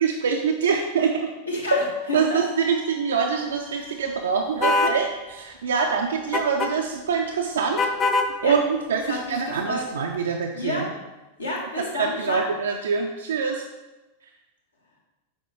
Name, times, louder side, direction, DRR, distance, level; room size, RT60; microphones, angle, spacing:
voice 1, 0.0-1.3 2.1-7.8 8.4-10.9 11.9-13.6, right 6 dB, 65° right, 3 dB, 0.4 m, -25 dB
voice 2, 1.5-2.4 8.4-8.5 9.1-9.8 10.5-10.9 11.4-12.5, left 2 dB, 80° left, -2 dB, 1.4 m, -30 dB
sound 1, 1.7-5.4 6.0-6.1 6.3-6.4, equal, 85° right, 1.1 m, -33 dB
sound 2, 4.6-5.0 6.3-6.7 7.8-8.3, left 3 dB, 25° left, 0.5 m, -22 dB
7.0 x 4.4 x 3.3 m, 1.1 s
figure-of-eight pair, 90°, 0 cm